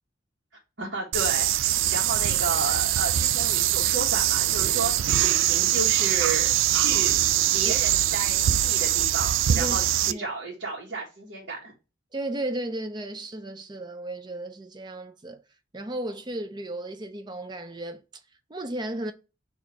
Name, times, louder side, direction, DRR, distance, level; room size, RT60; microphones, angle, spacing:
voice 1, 0.8-7.1 7.5-11.7, right 3 dB, 65° right, 1.5 m, -33 dB
sound 1, 1.1-10.1, right 12 dB, 90° right, 0.3 m, -23 dB
voice 2, 9.5-9.8 10.1-10.3 12.1-15.4 15.7-18.0 18.5-19.1, right 1 dB, 20° right, 0.4 m, -34 dB
4.2 x 2.9 x 4.3 m
head